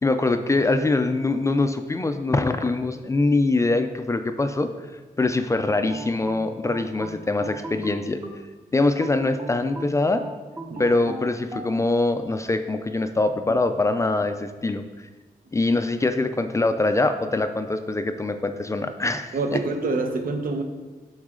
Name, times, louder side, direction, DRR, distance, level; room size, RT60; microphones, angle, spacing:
voice 1, 0.0-4.7 5.2-8.2 8.7-10.2 10.8-14.8 15.5-19.6, left 2 dB, 20° left, 8 dB, 0.3 m, -23 dB
sound 1, 5.9-8.5 9.0-11.7, right 2 dB, 25° right, 0.8 m, -37 dB
voice 2, 19.3-20.6, right 3 dB, 70° right, 5 dB, 0.8 m, -26 dB
11.0 x 4.0 x 3.7 m, 1.3 s
wide cardioid pair, 165°, 15 cm